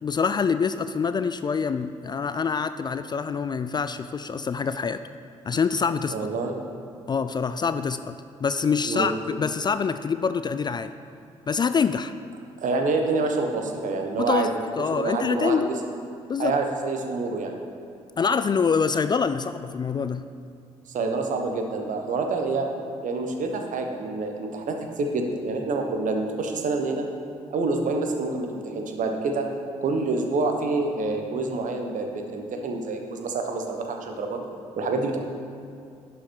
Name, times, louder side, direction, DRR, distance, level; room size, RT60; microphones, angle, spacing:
voice 1, 0.0-5.0 5.5-6.2 7.1-10.9 11.5-12.1 14.2-15.7 16.3-16.6 18.2-20.3, left 5 dB, 25° left, 11 dB, 0.3 m, -25 dB
voice 2, 6.1-6.5 8.8-9.1 12.6-14.5 14.9-15.6 16.4-17.5 20.9-22.7 23.0-27.0 27.5-29.5 29.8-34.4 34.8-35.2, right 3 dB, 50° right, 4 dB, 1.1 m, -27 dB
11.0 x 5.6 x 4.5 m, 2.5 s
figure-of-eight pair, 45°, 16 cm